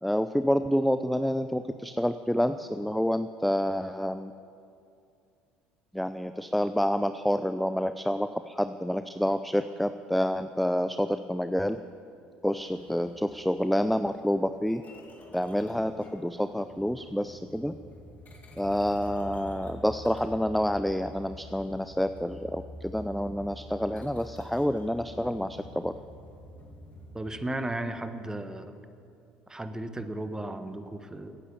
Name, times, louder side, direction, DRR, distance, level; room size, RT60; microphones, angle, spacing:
voice 1, 0.0-4.3 5.9-11.8 12.4-14.8 15.3-17.7 18.6-25.9, equal, ahead, 11 dB, 0.5 m, -28 dB
sound 1, 12.5-27.2, left 1 dB, 35° left, 2.6 m, -47 dB
voice 2, 27.1-28.8 29.5-31.4, right 1 dB, 15° right, 9 dB, 1.3 m, -35 dB
15.0 x 9.9 x 8.5 m, 2.5 s
hypercardioid pair, 65°, 5 cm